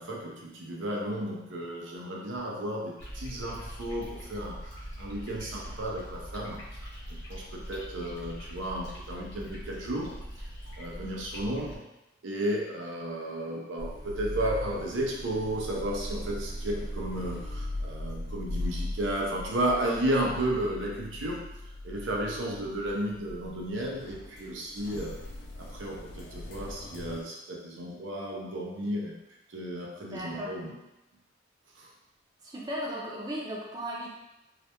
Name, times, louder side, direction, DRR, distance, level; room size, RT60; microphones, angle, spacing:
voice 1, 0.0-6.9 7.3-10.2 10.8-11.8 12.2-21.4 21.8-25.2 25.6-29.1 29.5-30.7 31.8-31.9, right 1 dB, 85° right, -1 dB, 0.5 m, -33 dB
sound 1, 3.0-11.8, equal, 65° left, 0.9 m, -42 dB
sound 2, 13.8-27.2, left 1 dB, 50° left, 0.3 m, -39 dB
voice 2, 30.1-30.5 32.4-34.1, equal, 20° right, -4 dB, 0.4 m, -36 dB
2.3 x 2.1 x 2.8 m, 0.95 s
head